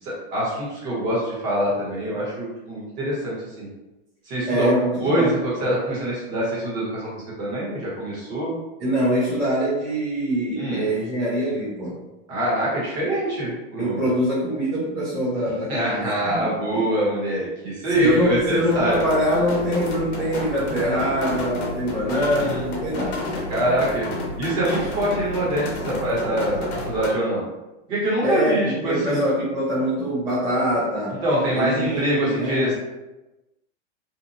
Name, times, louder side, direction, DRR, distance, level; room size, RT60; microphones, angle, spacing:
voice 1, 0.0-3.7 4.2-4.7 5.0-8.6 10.6-10.8 12.3-14.0 15.7-19.0 22.1-22.6 23.5-24.1 24.4-27.4 27.9-29.2 31.2-32.7, right 1 dB, 35° right, -6 dB, 1.1 m, -24 dB
voice 2, 4.4-5.7 8.8-12.0 13.8-16.9 17.9-23.2 28.2-31.2 31.5-32.7, equal, 10° right, -13 dB, 0.3 m, -24 dB
sound 1, 17.9-27.1, left 2 dB, 60° left, 0.8 m, -31 dB
2.8 x 2.2 x 2.6 m, 1.0 s
supercardioid pair, 165°, 36 cm